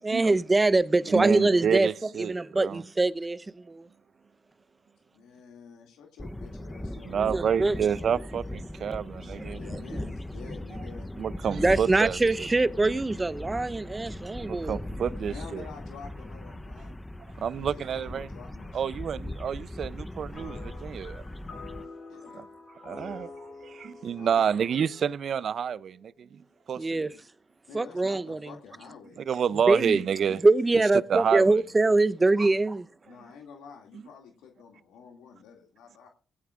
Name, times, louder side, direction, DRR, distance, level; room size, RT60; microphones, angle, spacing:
voice 1, 0.0-1.9 2.3-3.9 7.1-7.7 9.4-9.5 9.9-10.0 11.5-14.8 26.8-27.1 27.7-28.6 29.7-30.0 30.4-32.9, right 2 dB, 25° right, 0.8 m, -24 dB
voice 2, 1.1-2.8 7.0-9.6 11.2-12.5 14.4-15.6 17.4-18.3 18.7-21.2 22.8-23.3 23.6-26.4 26.7-27.0 29.2-30.4 31.1-31.6, right 8 dB, 65° right, 0.5 m, -29 dB
voice 3, 5.1-7.9 9.6-11.1 14.1-14.4 14.8-17.1 17.6-19.0 22.1-22.5 24.2-24.7 26.9-27.2 27.7-29.3 33.0-36.1, left 6 dB, 85° left, 2.3 m, -49 dB
sound 1, 6.2-21.9, left 1 dB, 15° left, 0.8 m, -39 dB
sound 2, 20.3-25.8, left 3 dB, 55° left, 6.5 m, -47 dB
19.0 x 16.0 x 2.5 m
supercardioid pair, 50°, 0 cm